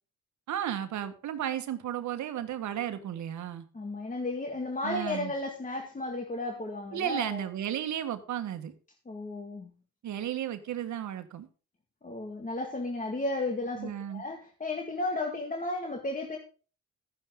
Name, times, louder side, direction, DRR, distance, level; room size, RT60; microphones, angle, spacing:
voice 1, 0.5-3.6 4.8-5.3 6.9-8.7 10.0-11.5 13.8-14.2, right 10 dB, 70° right, 9 dB, 1.5 m, -34 dB
voice 2, 3.7-7.4 9.1-9.7 12.0-16.4, left 2 dB, 25° left, 2 dB, 2.0 m, -34 dB
12.0 x 10.5 x 3.8 m, 0.37 s
cardioid pair, 90°, 30 cm